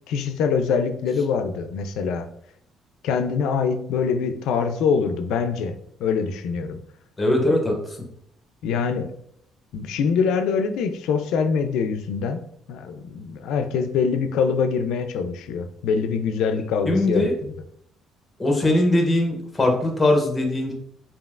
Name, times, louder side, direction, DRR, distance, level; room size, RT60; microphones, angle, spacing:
voice 1, 0.1-2.3 3.0-6.8 8.6-9.1 9.7-12.4 12.7-17.5, left 5 dB, 85° left, 8 dB, 0.4 m, -24 dB
voice 2, 7.2-7.8 16.9-17.3 18.4-20.7, left 1 dB, 15° left, 2 dB, 0.8 m, -20 dB
5.1 x 2.7 x 2.4 m, 0.69 s
cardioid pair, 150°, 0 cm